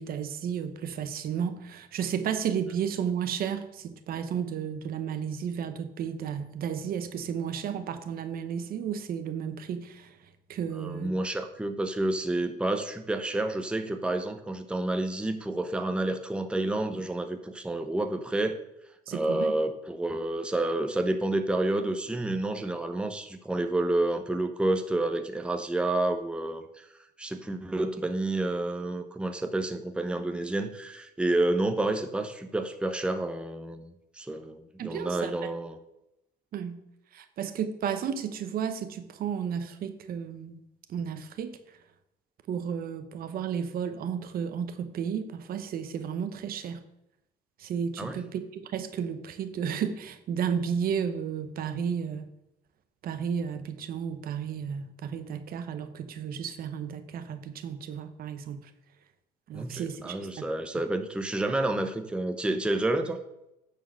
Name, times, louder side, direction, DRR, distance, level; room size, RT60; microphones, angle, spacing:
voice 1, 0.0-10.1 10.5-11.1 19.1-19.5 34.8-35.5 36.5-36.8 37.1-40.6 40.9-41.6 42.5-46.8 47.6-52.2 53.0-58.7 59.5-60.5, right 7 dB, 60° right, 9 dB, 0.9 m, -33 dB
voice 2, 10.7-18.6 19.1-26.9 27.2-35.8 48.0-48.2 59.5-63.2, right 2 dB, 5° right, 6 dB, 0.8 m, -29 dB
9.3 x 4.6 x 6.2 m, 0.84 s
cardioid pair, 110°, 17 cm